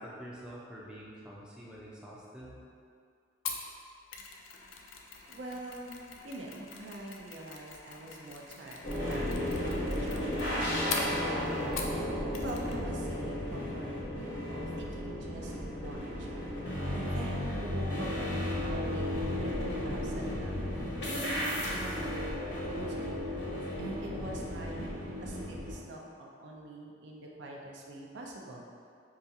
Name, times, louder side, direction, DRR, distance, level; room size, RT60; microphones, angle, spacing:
voice 1, 0.0-2.6, equal, 5° right, -7 dB, 0.4 m, -46 dB
Mechanisms, 3.5-12.0 12.3-12.8 13.1-13.2, left 5 dB, 90° left, 0.4 m, -43 dB
voice 2, 5.3-11.8 12.4-24.8 25.2-28.6, right 1 dB, 70° right, -1 dB, 0.5 m, -44 dB
sound 1, 8.8-25.8, left 1 dB, 65° left, 0.8 m, -34 dB
4.7 x 2.3 x 2.7 m, 2.3 s
head